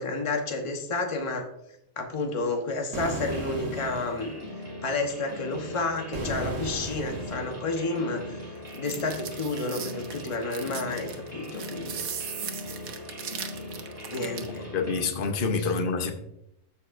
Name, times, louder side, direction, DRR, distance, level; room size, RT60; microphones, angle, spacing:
voice 1, 0.0-1.5 2.0-4.3 4.8-8.4 8.7-12.0 14.1-14.7 15.6-15.7, left 3 dB, 25° left, 1.0 m, -30 dB
sound 1, 2.9-4.3 6.1-7.6, right 1 dB, 50° right, 1.5 m, -35 dB
sound 2, 3.2-15.0, left 1 dB, 15° right, 2.6 m, -40 dB
sound 3, 8.7-14.6, right 8 dB, 85° right, 1.3 m, -38 dB
voice 2, 14.5-16.1, left 4 dB, 45° left, 1.0 m, -27 dB
14.5 x 5.5 x 2.6 m
omnidirectional pair, 1.4 m